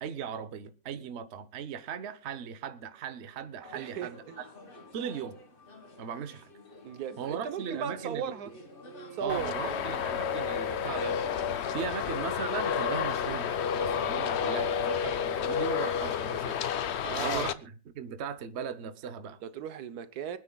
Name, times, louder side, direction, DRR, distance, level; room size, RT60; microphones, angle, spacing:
voice 1, 0.0-4.5 4.9-5.4 6.0-6.5 7.2-8.3 9.2-11.2 11.7-16.6 17.0-19.4, right 7 dB, 50° right, 1.0 m, -38 dB
sound 1, 3.6-13.2, left 1 dB, 35° left, 1.7 m, -50 dB
voice 2, 3.7-4.4 6.8-8.5 9.1-9.9 17.0-17.5 19.4-20.4, right 8 dB, 80° right, 1.4 m, -37 dB
Traffic noise roadway noise, 9.3-17.5, left 7 dB, 55° left, 0.8 m, -30 dB
24.5 x 9.6 x 2.3 m
omnidirectional pair, 1.6 m